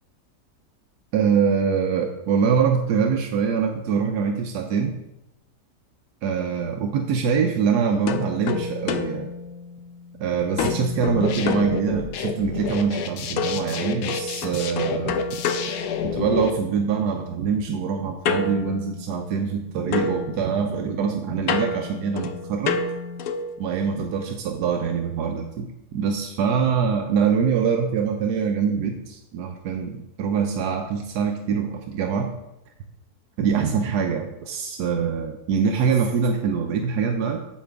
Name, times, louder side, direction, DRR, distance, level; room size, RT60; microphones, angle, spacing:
voice 1, 1.1-4.9 6.2-9.3 10.2-15.2 16.1-22.8 23.6-32.3 33.4-37.4, right 6 dB, 90° right, 3 dB, 1.3 m, -24 dB
sound 1, 8.1-10.2 10.6-12.4 13.4-16.6 18.2-19.6 19.9-23.6, left 5 dB, 70° left, 1.0 m, -29 dB
sound 2, 11.0-16.5, left 7 dB, 85° left, 1.3 m, -30 dB
8.6 x 7.5 x 3.5 m, 0.92 s
omnidirectional pair, 1.7 m